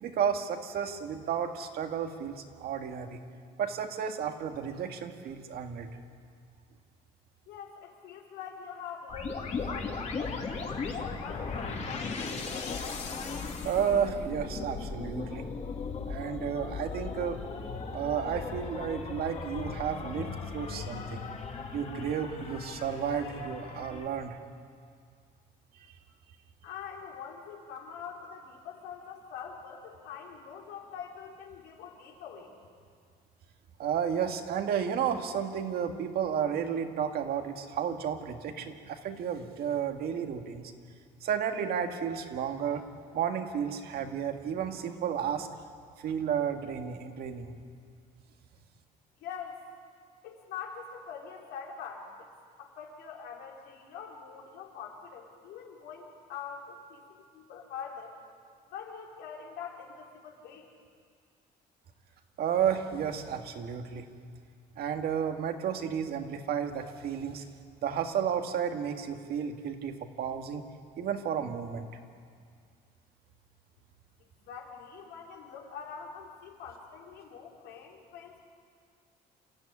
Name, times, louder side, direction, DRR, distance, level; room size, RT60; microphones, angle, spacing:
voice 1, 0.0-3.2 3.6-5.9 13.6-15.5 16.1-17.4 17.9-21.3 21.7-24.4 33.8-40.7 41.2-42.8 43.1-45.5 46.0-47.5 62.4-64.1 64.8-67.4 67.8-70.7 71.0-71.9, right 8 dB, 65° right, 5 dB, 2.0 m, -32 dB
voice 2, 7.5-12.2 26.6-32.5 49.2-49.6 50.2-52.3 52.6-58.1 58.7-60.7 74.5-78.4, left 7 dB, 85° left, -1 dB, 4.3 m, -44 dB
sound 1, 9.1-24.1, left 4 dB, 40° left, 3.0 m, -37 dB
27.5 x 14.0 x 9.8 m, 2.1 s
cardioid pair, 110°, 17 cm